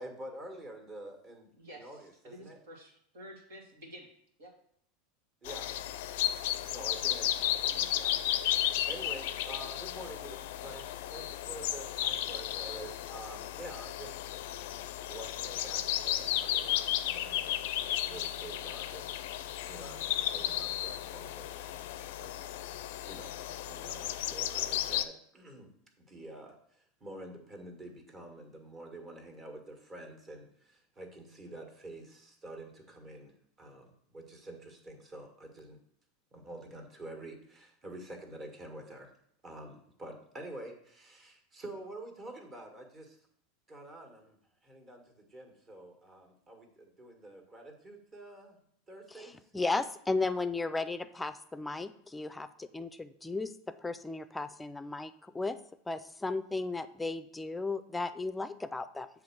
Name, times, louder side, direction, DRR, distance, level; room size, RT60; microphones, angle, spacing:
voice 1, 0.0-2.6 5.4-5.7 6.6-8.2 8.9-14.3 15.1-25.7 26.0-35.8 36.3-39.1 39.4-43.2 43.7-48.6 48.9-49.5, right 1 dB, 30° right, 3 dB, 1.8 m, -48 dB
voice 2, 1.6-4.1 4.4-4.5, equal, 75° right, -1 dB, 2.3 m, -50 dB
sound 1, 5.5-25.0, left 12 dB, 70° left, 0.4 m, -34 dB
voice 3, 49.1-59.1, left 3 dB, 10° left, 12 dB, 0.5 m, -35 dB
7.6 x 3.6 x 6.1 m, 0.67 s
hypercardioid pair, 90°, 0 cm